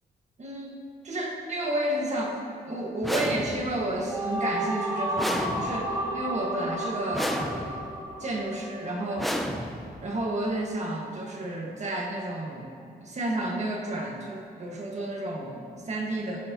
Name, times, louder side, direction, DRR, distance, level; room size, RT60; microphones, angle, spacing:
voice 1, 0.4-7.8 8.2-9.3 10.0-12.7 13.0-16.4, right 1 dB, 40° right, -1 dB, 1.8 m, -31 dB
sound 1, 3.0-3.9 5.2-6.1 7.1-7.9 9.2-10.1, equal, ahead, 0.7 m, -32 dB
sound 2, 3.9-9.1, right 1 dB, 20° right, 1.4 m, -32 dB
16.0 x 6.4 x 3.0 m, 2.6 s
cardioid pair, 110°, 17 cm